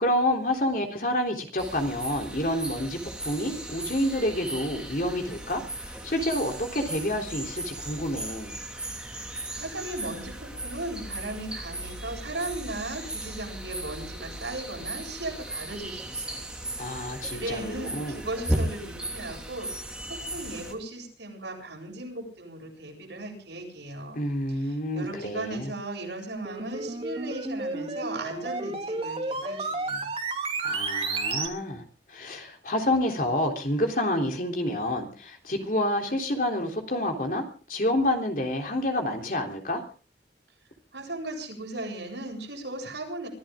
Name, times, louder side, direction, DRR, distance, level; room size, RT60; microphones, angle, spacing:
voice 1, 0.0-3.0 3.2-8.5 16.8-18.3 24.1-25.7 30.6-31.8 32.1-39.8, left 1 dB, 50° left, 3 dB, 3.5 m, -28 dB
sound 1, 1.6-20.7, right 1 dB, 5° right, 2.4 m, -36 dB
voice 2, 9.6-16.5 16.8-24.2 24.7-30.1 40.9-43.3, right 2 dB, 85° right, 1 dB, 7.8 m, -37 dB
sound 2, 26.3-31.5, right 3 dB, 35° right, 2.8 m, -32 dB
24.5 x 14.5 x 3.8 m, 0.39 s
head